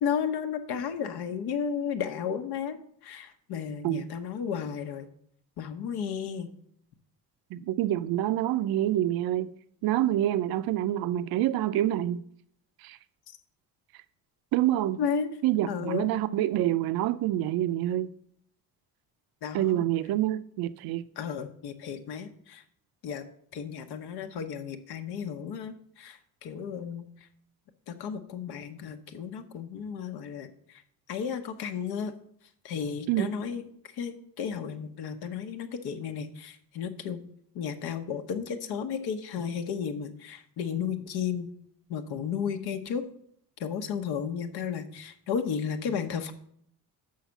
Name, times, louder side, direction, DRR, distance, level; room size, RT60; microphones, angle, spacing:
voice 1, 0.0-5.1 5.6-6.5 15.0-15.3 15.7-16.1 19.4-19.8 21.2-22.6 23.0-23.2 23.5-27.1 27.9-30.8 31.1-32.1 32.6-33.6 33.9-37.2 37.5-41.5 41.9-43.0 43.6-46.3, left 7 dB, 80° left, 1.0 m, -33 dB
voice 2, 7.5-9.5 9.8-12.2 12.8-13.0 14.5-15.0 15.4-18.1 19.5-21.0 33.1-33.3, right 13 dB, 70° right, 0.5 m, -27 dB
6.4 x 5.7 x 7.0 m
cardioid pair, 170°, 38 cm